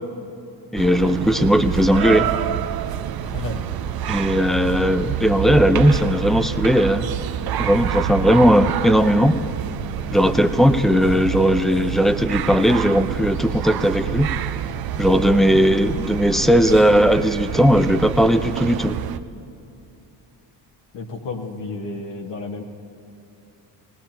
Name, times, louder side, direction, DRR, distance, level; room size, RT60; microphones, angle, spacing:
voice 1, 0.7-2.3 4.1-7.1 7.6-9.4 10.1-14.3 15.0-19.0, equal, ahead, 9 dB, 0.6 m, -17 dB
sound 1, 0.8-19.2, right 10 dB, 60° right, 0.6 m, -27 dB
voice 2, 3.2-3.7 15.5-15.7 20.9-22.6, left 3 dB, 80° left, -2 dB, 1.6 m, -32 dB
20.5 x 18.0 x 3.0 m, 2.8 s
cardioid pair, 85°, 43 cm